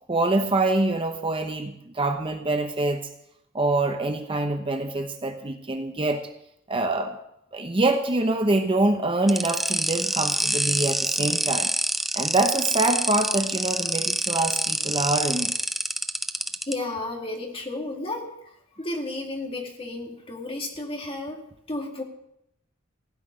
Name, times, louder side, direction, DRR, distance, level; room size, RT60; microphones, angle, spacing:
voice 1, 0.1-3.1 3.5-6.3 6.7-7.2 7.5-11.7 12.1-15.5, right 2 dB, 25° right, 6 dB, 0.8 m, -25 dB
sound 1, 9.3-16.7, equal, ahead, 0.5 m, -26 dB
voice 2, 16.6-18.3 18.8-22.0, left 2 dB, 30° left, 1 dB, 2.2 m, -32 dB
16.5 x 5.8 x 9.6 m, 0.77 s
head